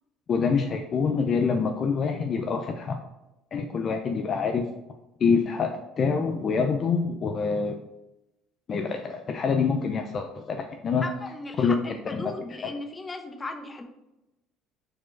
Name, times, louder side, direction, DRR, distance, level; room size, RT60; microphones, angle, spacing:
voice 1, 0.3-3.0 3.5-4.6 5.2-7.8 8.7-11.0 11.6-11.7 12.1-12.2 12.6-12.7, left 5 dB, 40° left, 4 dB, 0.5 m, -26 dB
voice 2, 11.0-13.8, left 2 dB, 20° left, 5 dB, 0.9 m, -36 dB
5.0 x 4.3 x 4.6 m, 0.94 s
cardioid pair, 115°, 0 cm